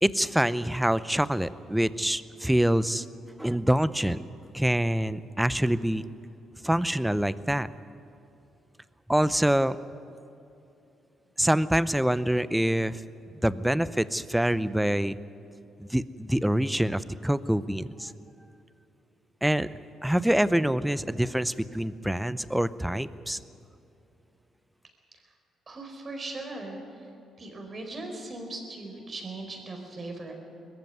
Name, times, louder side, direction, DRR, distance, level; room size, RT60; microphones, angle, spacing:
voice 1, 0.0-3.0 3.4-4.2 4.5-6.0 6.6-7.7 9.1-9.8 11.4-13.0 13.4-15.2 15.8-18.1 19.4-19.7 20.0-23.4, right 1 dB, 5° right, 16 dB, 0.6 m, -25 dB
voice 2, 25.7-27.1 27.4-30.3, right 2 dB, 35° right, 3 dB, 4.7 m, -39 dB
20.5 x 15.0 x 9.5 m, 2.7 s
cardioid pair, 90°, 0 cm